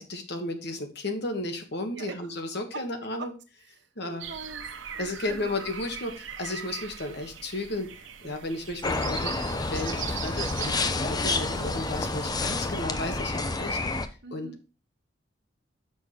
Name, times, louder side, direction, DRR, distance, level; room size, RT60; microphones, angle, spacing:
voice 1, 0.0-3.3 4.0-4.2 5.0-7.9 8.2-9.3 9.7-14.0 14.3-14.5, left 2 dB, 60° left, 5 dB, 1.5 m, -34 dB
voice 2, 1.9-2.3 2.7-2.9 3.2-3.3 3.6-5.7 8.2-8.4 10.0-10.4 14.2-14.6, right 3 dB, 65° right, 6 dB, 1.2 m, -44 dB
sound 1, 4.2-12.8, right 7 dB, 85° right, 1.0 m, -41 dB
sound 2, 8.8-14.1, left 3 dB, 20° left, 0.6 m, -29 dB
6.3 x 6.0 x 5.1 m, 0.34 s
head